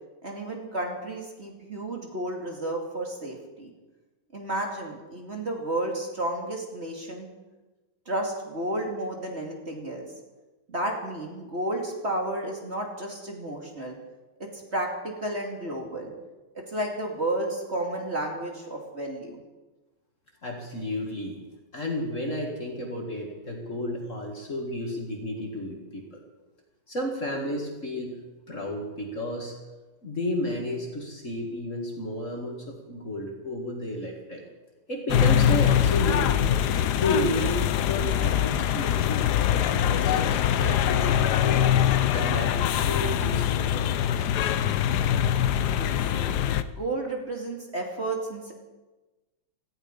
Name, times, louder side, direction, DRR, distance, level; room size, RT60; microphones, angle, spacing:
voice 1, 0.2-3.7 4.3-7.3 8.1-10.1 10.7-14.0 14.4-16.1 16.5-19.4 45.6-46.0 46.7-48.5, right 1 dB, 30° right, 0 dB, 2.6 m, -32 dB
voice 2, 20.4-21.4 21.7-26.2 26.9-28.2 28.5-29.5 30.0-34.4 34.9-36.6 36.9-41.6 42.1-44.3, left 1 dB, 35° left, 1 dB, 2.5 m, -32 dB
sound 1, 35.1-46.6, left 10 dB, 65° left, 1.1 m, -23 dB
18.0 x 15.0 x 5.2 m, 1.2 s
omnidirectional pair, 2.3 m